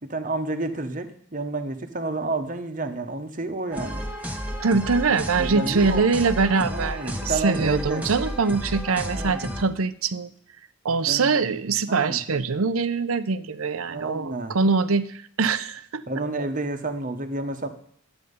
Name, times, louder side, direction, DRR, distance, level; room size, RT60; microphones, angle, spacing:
voice 1, 0.0-4.1 5.4-6.1 6.7-8.1 9.0-9.5 11.1-11.4 11.9-12.2 13.9-14.6 16.1-17.7, right 2 dB, 40° right, 7 dB, 1.1 m, -30 dB
sound 1, 3.7-9.6, equal, 5° right, 1.1 m, -32 dB
voice 2, 4.6-10.3 10.8-16.0, right 4 dB, 85° right, 14 dB, 0.7 m, -23 dB
12.0 x 9.0 x 5.4 m, 0.63 s
head